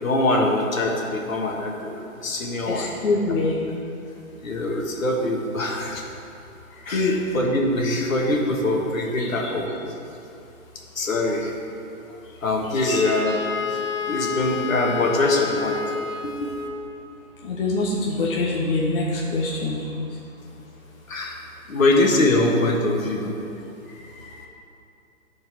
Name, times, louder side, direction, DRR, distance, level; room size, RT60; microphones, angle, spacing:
voice 1, 0.0-2.9 4.4-6.0 6.8-9.7 11.0-11.5 12.4-13.8 14.1-15.8 16.2-16.5 21.1-21.4 21.7-23.3, left 2 dB, 65° left, 0 dB, 1.8 m, -23 dB
voice 2, 2.7-3.6 6.9-7.2 9.2-9.5 12.8-13.0 17.4-20.1 24.2-24.4, left 3 dB, 40° left, -2 dB, 0.9 m, -25 dB
Wind instrument woodwind instrument, 12.9-16.9, left 5 dB, 90° left, 2.1 m, -29 dB
12.0 x 4.6 x 6.0 m, 2.7 s
hypercardioid pair, 160°, 43 cm